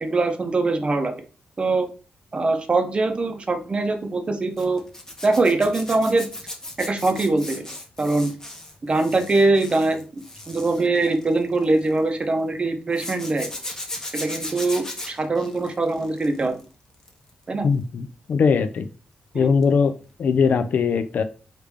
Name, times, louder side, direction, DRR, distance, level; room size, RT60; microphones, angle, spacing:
voice 1, 0.0-1.1 1.6-1.9 2.3-4.8 5.2-6.3 6.8-7.7 8.0-8.3 8.8-13.5 14.1-16.6 17.5-17.7 19.3-19.5, right 2 dB, 35° right, 6 dB, 0.6 m, -22 dB
Zipper (clothing), 4.6-12.0 12.9-16.6 16.9-17.3 19.6-19.8 20.0-20.1, left 1 dB, 20° left, 0.8 m, -37 dB
voice 2, 17.6-18.9 19.3-19.9 20.2-21.2, left 5 dB, 60° left, 10 dB, 0.4 m, -20 dB
3.2 x 2.5 x 3.3 m, 0.35 s
cardioid pair, 80°, 3 cm